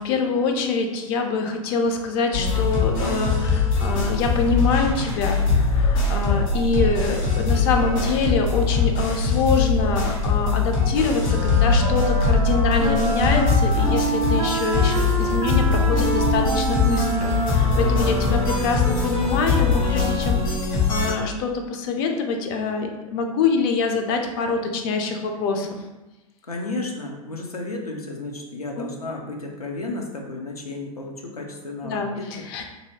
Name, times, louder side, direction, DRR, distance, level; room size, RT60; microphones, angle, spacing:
voice 1, 0.0-20.6 20.9-25.8 28.8-28.9 31.8-32.6, left 4 dB, 40° left, 4 dB, 0.5 m, -25 dB
sound 1, 2.3-21.1, left 4 dB, 65° left, 1.3 m, -22 dB
Wind instrument woodwind instrument, 11.2-19.5, right 3 dB, 20° right, 0.4 m, -27 dB
voice 2, 26.4-32.3, left 2 dB, 85° left, 0 dB, 0.6 m, -33 dB
2.7 x 2.6 x 3.1 m, 1.0 s
figure-of-eight pair, 95°, 19 cm